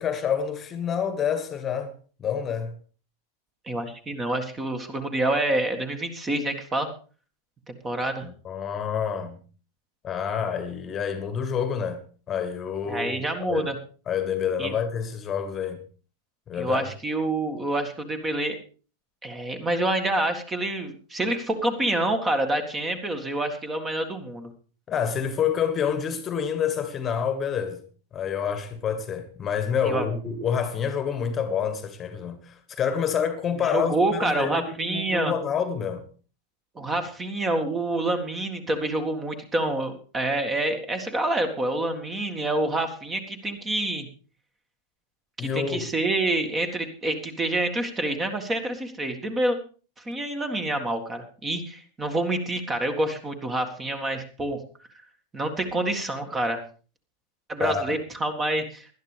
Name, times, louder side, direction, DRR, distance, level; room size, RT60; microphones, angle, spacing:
voice 1, 0.0-1.9 2.2-2.7 8.2-9.4 10.0-12.0 12.3-13.7 14.1-15.8 16.5-16.9 24.9-27.8 28.1-36.0 45.4-45.9 57.6-57.8, left 7 dB, 25° left, 1.5 m, -28 dB
voice 2, 3.7-6.9 7.8-8.3 12.9-13.8 14.6-14.7 16.5-18.6 19.2-24.5 29.8-30.1 33.7-35.3 36.8-44.1 45.4-49.6 50.1-54.6 55.3-56.6 57.5-58.9, right 2 dB, 15° right, 1.9 m, -27 dB
19.5 x 11.5 x 3.4 m
figure-of-eight pair, 90°, 0 cm